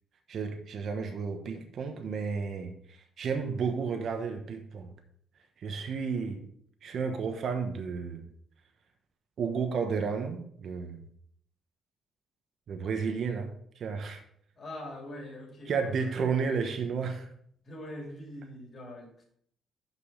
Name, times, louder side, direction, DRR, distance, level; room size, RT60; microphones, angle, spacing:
voice 1, 0.3-4.9 5.6-6.4 6.8-8.2 9.4-11.0 12.7-13.5 13.8-14.2 15.7-17.3, right 5 dB, 60° right, 5 dB, 1.0 m, -32 dB
voice 2, 14.5-16.3 17.6-19.2, left 1 dB, 45° left, 0 dB, 2.7 m, -43 dB
6.1 x 5.8 x 5.4 m, 0.66 s
cardioid pair, 90°, 0 cm